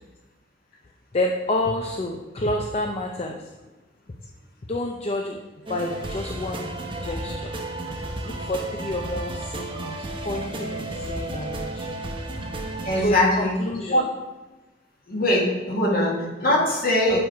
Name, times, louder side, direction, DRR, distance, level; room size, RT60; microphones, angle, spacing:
voice 1, 1.1-3.5 4.7-5.4 5.7-6.7 7.0-7.5 8.2-11.9 12.9-14.1 17.1-17.2, left 1 dB, 35° left, 2 dB, 0.5 m, -29 dB
sound 1, 5.7-13.0, right 1 dB, 30° right, 0.9 m, -32 dB
voice 2, 12.9-13.5 13.9-14.0 15.1-17.2, left 1 dB, 55° left, -3 dB, 2.1 m, -21 dB
8.7 x 4.7 x 4.5 m, 1.1 s
head